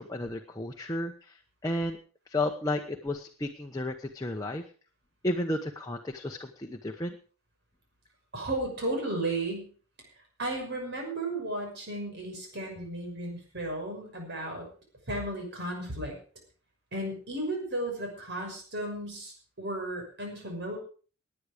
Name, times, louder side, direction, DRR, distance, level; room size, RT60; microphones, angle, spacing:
voice 1, 0.0-1.3 1.6-2.0 2.3-4.6 5.2-7.2, left 1 dB, 15° left, 2 dB, 1.0 m, -32 dB
voice 2, 8.3-9.7 10.4-14.7 15.1-16.1 16.9-20.8, right 1 dB, 50° right, 1 dB, 6.1 m, -34 dB
18.5 x 9.9 x 5.1 m, 0.40 s
head